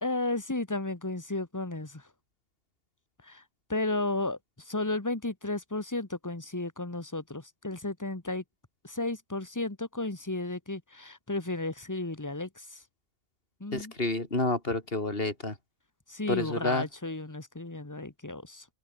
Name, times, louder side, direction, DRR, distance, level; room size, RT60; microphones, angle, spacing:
voice 1, 0.0-2.0 3.2-3.4 3.7-8.4 8.8-12.8 13.6-13.9 16.1-18.6, left 2 dB, 15° left, 1.6 m, -33 dB
voice 2, 13.7-15.5 16.3-16.9, left 2 dB, 50° left, 4.8 m, -29 dB
open air
omnidirectional pair, 1.3 m